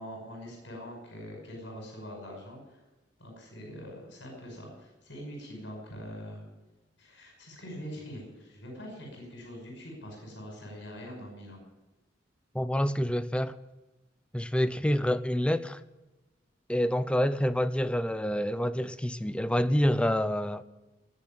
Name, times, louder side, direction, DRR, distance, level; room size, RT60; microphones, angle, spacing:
voice 1, 0.0-2.8 3.2-6.5 7.0-11.6, equal, 80° left, 5.7 m, -43 dB
voice 2, 12.5-13.6 14.3-15.8 16.7-20.6, equal, 5° left, 0.5 m, -27 dB
19.0 x 7.4 x 8.8 m
head